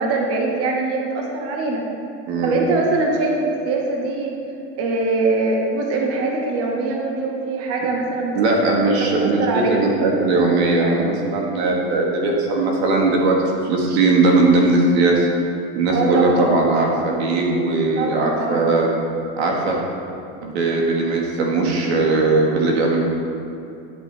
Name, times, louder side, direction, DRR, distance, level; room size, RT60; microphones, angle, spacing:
voice 1, 0.0-1.8 2.4-4.3 4.8-9.8 15.9-16.5 17.9-18.7, right 3 dB, 50° right, 0 dB, 1.5 m, -23 dB
voice 2, 2.3-2.6 8.4-15.3 15.8-18.9 19.4-19.8 20.4-23.0, right 3 dB, 80° right, -1 dB, 1.7 m, -19 dB
11.0 x 8.4 x 3.4 m, 2.7 s
supercardioid pair, 120°, 32 cm